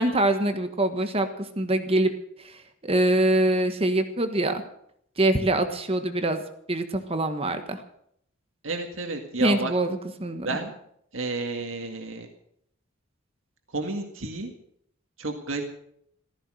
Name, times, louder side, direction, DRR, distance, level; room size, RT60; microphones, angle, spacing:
voice 1, 0.0-2.1 2.4-4.6 5.2-6.4 6.7-7.8 9.4-10.5, right 1 dB, 30° right, 8 dB, 1.4 m, -24 dB
voice 2, 8.6-9.7 10.4-10.7 11.1-12.3 13.7-14.5 15.2-15.6, right 3 dB, 75° right, 4 dB, 2.0 m, -31 dB
15.0 x 14.5 x 6.4 m, 0.69 s
head